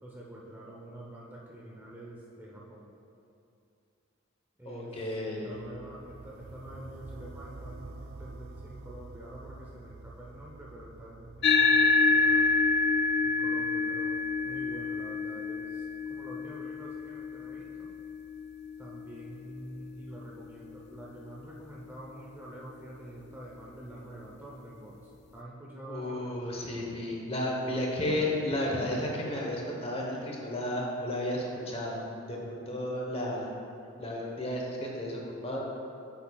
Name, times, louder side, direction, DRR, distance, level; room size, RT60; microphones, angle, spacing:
voice 1, 0.0-2.9 4.6-12.5 13.2-17.9 18.8-26.5, right 1 dB, 10° right, -5 dB, 0.7 m, -47 dB
voice 2, 4.7-5.5 25.9-33.5 34.0-35.6, left 1 dB, 30° left, -2 dB, 1.0 m, -33 dB
sound 1, 5.5-15.4, right 3 dB, 85° right, 0.4 m, -49 dB
sound 2, 11.4-20.2, left 3 dB, 55° left, 0.4 m, -28 dB
8.9 x 7.1 x 2.3 m, 2.6 s
head